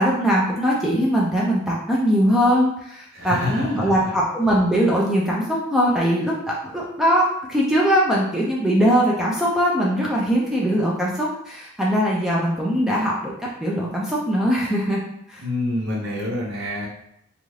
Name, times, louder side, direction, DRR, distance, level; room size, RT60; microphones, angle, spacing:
voice 1, 0.0-13.3 13.6-15.0 15.3-15.4, equal, ahead, -4 dB, 0.4 m, -21 dB
voice 2, 3.1-4.0 15.4-16.9, left 1 dB, 60° right, -5 dB, 0.7 m, -27 dB
2.6 x 2.3 x 3.1 m, 0.74 s
head